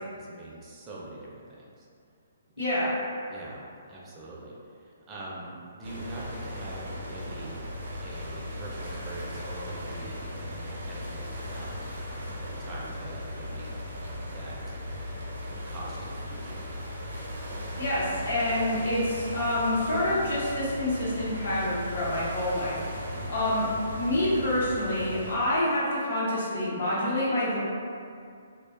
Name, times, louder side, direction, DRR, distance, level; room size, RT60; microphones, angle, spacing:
voice 1, 0.0-1.9 3.3-11.7 12.0-13.8 14.3-14.7 15.5-16.8 23.1-23.4, right 1 dB, 20° right, -5 dB, 0.4 m, -44 dB
voice 2, 2.6-3.0 17.8-22.8 23.3-23.6 24.0-27.6, left 1 dB, 75° left, -8 dB, 1.0 m, -27 dB
sound 1, 5.8-25.4, left 1 dB, 70° right, 0.6 m, -37 dB
2.3 x 2.2 x 2.4 m, 2.3 s
hypercardioid pair, 145°, 0 cm